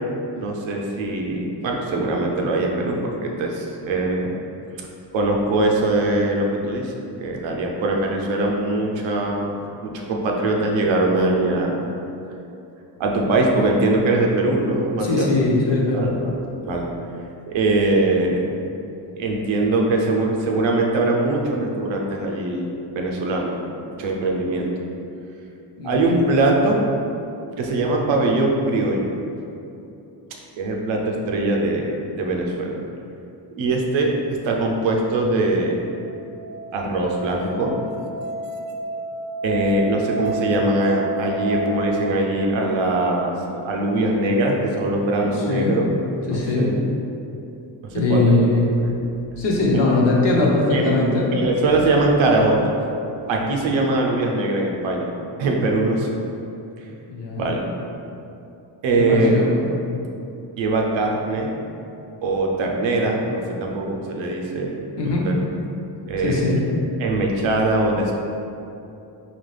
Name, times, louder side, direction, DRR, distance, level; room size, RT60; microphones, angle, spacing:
voice 1, 0.3-4.3 4.8-4.9 5.1-6.9 7.2-11.8 13.0-15.3 15.9-16.9 17.5-18.4 19.2-23.5 24.0-24.7 25.8-26.8 27.6-29.1 30.6-32.8 33.5-34.1 34.4-35.8 36.7-37.8 39.4-45.9 46.2-46.9 47.8-48.4 48.7-48.9 49.7-49.8 50.7-52.7 53.3-55.1 55.4-56.1 57.4-57.6 58.8-59.4 60.6-61.5 62.2-65.3 66.1-66.4 67.0-68.1, right 2 dB, 85° right, 0 dB, 0.7 m, -22 dB
voice 2, 15.0-16.1 25.8-26.0 45.2-45.8 46.3-46.7 47.9-48.7 49.4-51.3 57.1-57.6 59.0-59.7 65.0-65.3 66.2-66.6, left 2 dB, 65° left, -3 dB, 1.0 m, -20 dB
Musical instrument, 36.0-41.7, right 3 dB, 50° right, 0.5 m, -30 dB
4.1 x 2.9 x 3.3 m, 2.7 s
cardioid pair, 70°, 45 cm